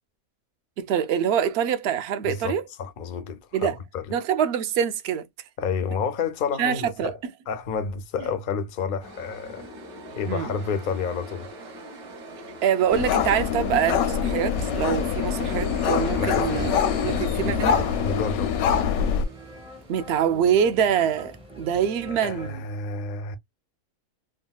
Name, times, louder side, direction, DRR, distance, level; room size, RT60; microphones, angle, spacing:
voice 1, 0.8-2.6 3.5-3.8 4.1-5.2 6.6-7.1 10.3-10.5 12.6-16.8 17.0-17.9 19.9-22.6, right 8 dB, 65° right, 0.6 m, -25 dB
voice 2, 2.2-4.1 5.6-7.1 7.5-9.7 10.2-11.5 16.1-16.7 17.0-18.5 22.2-23.4, left 5 dB, 65° left, 0.5 m, -30 dB
sound 1, 9.0-21.9, right 2 dB, 90° right, 1.6 m, -43 dB
sound 2, 12.9-19.2, left 8 dB, 80° left, 1.0 m, -24 dB
sound 3, 13.7-22.5, right 1 dB, 10° right, 0.4 m, -45 dB
3.7 x 2.1 x 2.3 m
omnidirectional pair, 1.5 m